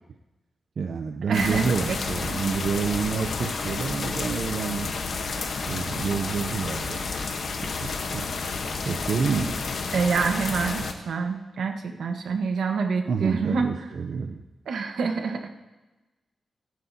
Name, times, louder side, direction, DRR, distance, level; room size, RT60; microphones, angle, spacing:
voice 1, 0.8-4.9 5.7-7.0 7.8-8.2 8.8-9.5 13.1-14.4, right 5 dB, 55° right, 4 dB, 0.6 m, -28 dB
sound 1, 1.3-10.9, left 4 dB, 60° left, 1.1 m, -31 dB
voice 2, 1.3-2.0 9.9-13.7 14.7-15.5, right 5 dB, 80° right, 4 dB, 1.2 m, -26 dB
27.0 x 9.4 x 2.8 m, 1.1 s
wide cardioid pair, 150°, 0 cm